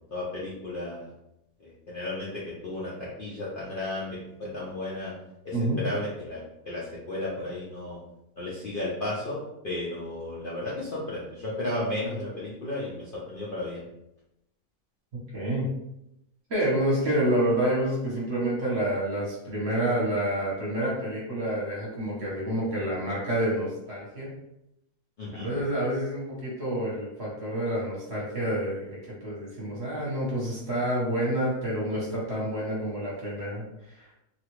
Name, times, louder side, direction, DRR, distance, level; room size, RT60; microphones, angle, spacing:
voice 1, 0.1-1.1 1.6-5.1 5.4-6.4 6.7-8.0 8.4-9.4 9.6-13.8 25.2-25.5, left 1 dB, 50° left, -8 dB, 0.6 m, -34 dB
voice 2, 15.1-15.7 16.5-24.4 25.3-34.1, right 1 dB, 45° right, -5 dB, 1.2 m, -28 dB
2.9 x 2.4 x 3.0 m, 0.86 s
omnidirectional pair, 1.6 m